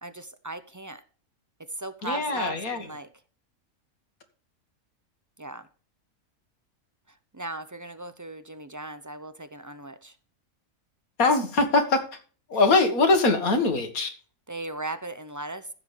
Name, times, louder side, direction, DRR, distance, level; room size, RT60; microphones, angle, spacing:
voice 1, 0.0-1.0 1.7-3.1 5.4-5.7 7.1-10.2 14.5-15.7, right 2 dB, 25° right, 12 dB, 0.4 m, -37 dB
voice 2, 2.0-2.9 11.2-12.2 12.5-14.1, left 3 dB, 80° left, 7 dB, 2.1 m, -22 dB
15.0 x 7.5 x 3.3 m, 0.40 s
omnidirectional pair, 1.5 m